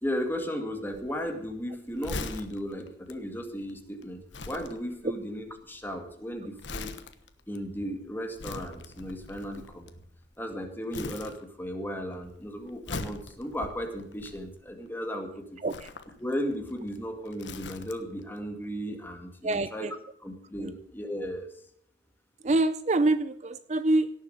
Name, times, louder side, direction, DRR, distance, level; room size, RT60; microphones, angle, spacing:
voice 1, 0.0-4.2 4.5-6.9 7.5-9.9 10.4-15.6 16.2-19.9 20.2-21.5, equal, 10° left, 4 dB, 2.0 m, -35 dB
Crumpling crinkling, 0.9-10.5 10.9-11.9 12.1-14.9 15.6-18.2 18.5-18.6, left 3 dB, 80° left, 1.3 m, -42 dB
voice 2, 15.6-15.9 19.4-19.9 20.6-20.8 22.4-24.1, right 2 dB, 40° right, 13 dB, 0.5 m, -26 dB
17.5 x 7.5 x 7.7 m, 0.69 s
head